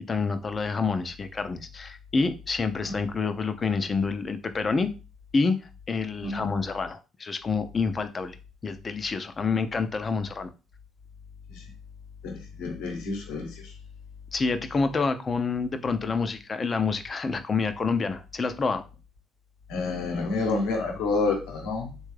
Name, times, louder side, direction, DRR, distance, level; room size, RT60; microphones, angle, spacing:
voice 1, 0.1-4.9 5.3-5.6 5.9-8.4 8.6-10.5 14.3-18.8, left 4 dB, 40° left, 0.5 m, -27 dB
voice 2, 12.2-13.7 19.7-21.9, left 3 dB, 80° left, 0.9 m, -29 dB
3.3 x 2.3 x 3.2 m
hypercardioid pair, 60°, 0 cm